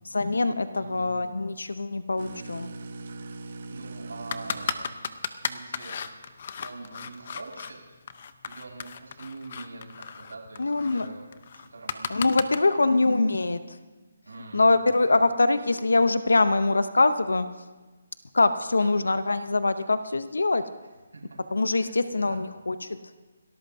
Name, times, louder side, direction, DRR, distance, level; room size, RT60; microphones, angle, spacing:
voice 1, 0.1-2.7 10.6-11.1 12.1-13.6 14.5-17.5 18.3-20.6 21.5-23.0, left 3 dB, 85° left, 12 dB, 0.7 m, -23 dB
voice 2, 0.7-1.1 3.5-5.0 5.4-6.0 6.6-8.0 8.4-12.2 12.5-13.2 14.2-15.2 18.8-18.9 21.1-21.4 21.7-22.4, right 3 dB, 85° right, -2 dB, 5.3 m, -44 dB
sound 1, 2.2-5.2, right 3 dB, 55° right, 1.2 m, -40 dB
sound 2, 4.3-7.7 8.1-12.6, left 7 dB, 45° left, 0.8 m, -35 dB
28.5 x 13.5 x 2.7 m, 1.3 s
figure-of-eight pair, 155°, 0 cm